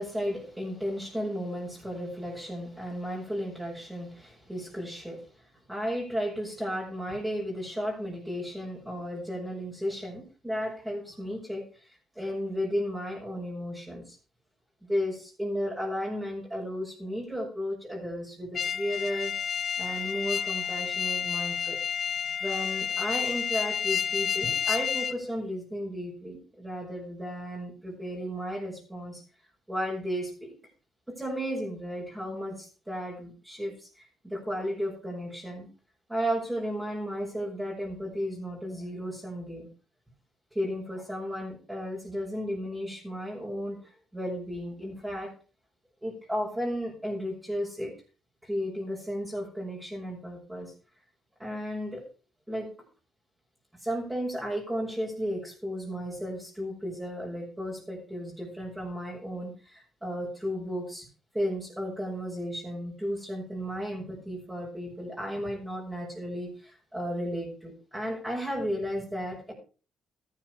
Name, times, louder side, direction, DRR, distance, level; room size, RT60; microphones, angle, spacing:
voice 1, 0.0-14.2 14.9-19.4 19.8-21.8 22.4-29.2 29.7-30.5 31.1-35.7 36.1-39.7 40.5-45.3 46.0-47.9 48.4-50.7 51.4-52.0 52.5-52.7 53.8-61.1 61.3-69.5, equal, 10° right, -3 dB, 6.2 m, -34 dB
sound 1, 18.5-25.2, left 7 dB, 55° left, 1.0 m, -30 dB
13.5 x 10.5 x 4.9 m, 0.36 s
cardioid pair, 90°, 0 cm